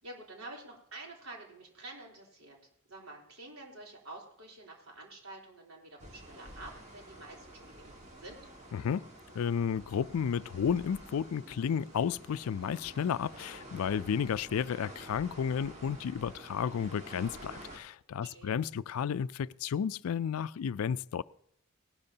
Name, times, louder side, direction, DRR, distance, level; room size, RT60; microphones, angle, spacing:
voice 1, 0.0-2.6 2.9-7.9 8.2-8.4 18.2-18.6, right 2 dB, 80° right, 3.6 m, -48 dB
sound 1, 6.0-17.8, right 1 dB, 30° right, 1.7 m, -50 dB
voice 2, 8.7-9.1 9.3-21.2, left 7 dB, 80° left, 0.4 m, -32 dB
19.0 x 12.0 x 2.8 m
head